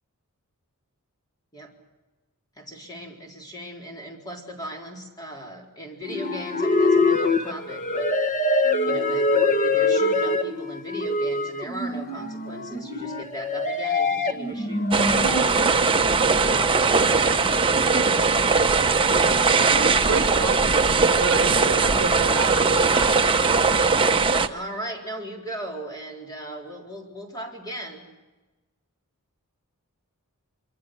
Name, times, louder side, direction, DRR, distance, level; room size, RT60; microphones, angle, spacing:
voice 1, 2.6-8.4 8.8-14.9 24.5-28.0, equal, 20° left, 1 dB, 4.2 m, -37 dB
sound 1, 6.0-15.4, left 2 dB, 35° left, 1.4 m, -24 dB
sound 2, 14.9-24.5, right 4 dB, 25° right, 1.0 m, -20 dB
voice 2, 19.7-23.8, right 4 dB, 60° right, 7 dB, 1.3 m, -31 dB
25.0 x 24.5 x 6.3 m, 1.1 s
head